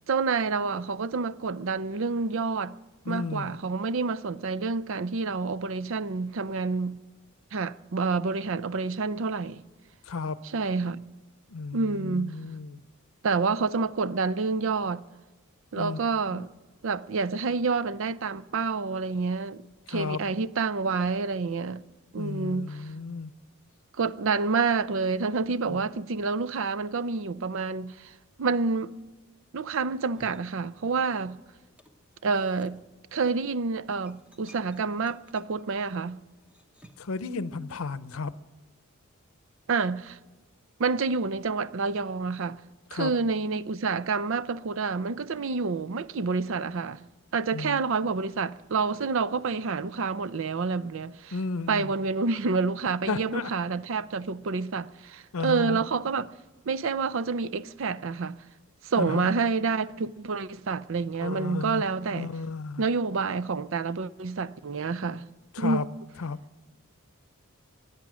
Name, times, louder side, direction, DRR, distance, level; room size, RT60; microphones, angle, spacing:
voice 1, 0.1-2.7 3.1-7.0 7.5-9.6 10.5-11.0 11.7-12.3 13.2-15.0 15.7-16.5 16.8-19.6 19.9-21.8 22.1-22.8 24.0-28.1 28.4-28.9 29.5-31.4 32.2-32.8 33.1-36.2 39.7-40.2 40.8-42.6 42.9-47.0 47.3-51.3 51.7-56.3 56.7-58.4 58.8-62.3 62.8-65.2 65.6-65.8, right 4 dB, 65° right, 0.5 m, -28 dB
voice 2, 3.0-3.5 10.0-10.4 11.5-12.8 15.8-16.0 16.3-16.5 19.9-20.2 22.2-23.3 25.5-25.8 37.0-38.3 42.9-43.1 47.5-47.8 51.3-51.9 53.1-53.5 55.3-55.8 58.9-59.2 61.2-61.8 62.1-62.8 65.5-65.9 66.2-66.4, left 4 dB, 80° left, 0.7 m, -33 dB
sound 1, 30.1-31.4 31.6-37.2, equal, 5° right, 1.0 m, -57 dB
23.5 x 9.7 x 6.2 m
head